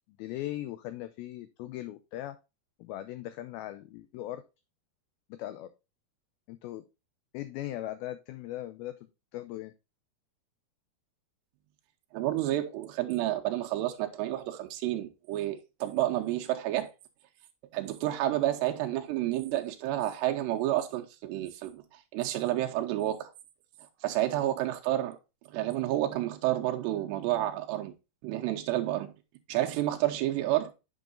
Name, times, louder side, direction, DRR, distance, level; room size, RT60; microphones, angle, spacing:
voice 1, 0.2-2.4 2.8-4.4 5.3-5.7 6.5-6.8 7.3-9.0 9.3-9.7, left 14 dB, 85° left, 2.1 m, -39 dB
voice 2, 12.1-16.9 17.7-23.3 24.0-25.2 25.5-27.9 28.2-29.1 29.5-30.7, right 14 dB, 85° right, 2.8 m, -30 dB
8.5 x 6.3 x 2.5 m
omnidirectional pair, 4.9 m